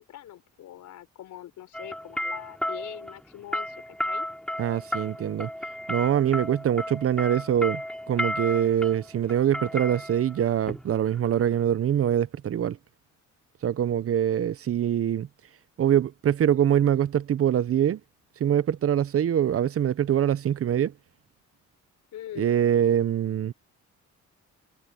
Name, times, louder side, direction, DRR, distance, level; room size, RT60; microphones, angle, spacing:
voice 1, 0.0-4.3 22.1-22.6, left 12 dB, 75° left, 4.2 m, -43 dB
sound 1, 1.7-11.6, left 1 dB, 5° left, 3.7 m, -34 dB
voice 2, 4.6-5.5 5.9-7.8 8.1-12.8 13.6-15.3 15.8-18.0 18.4-20.9 22.4-23.5, right 10 dB, 50° right, 0.7 m, -24 dB
cardioid pair, 90°, 30 cm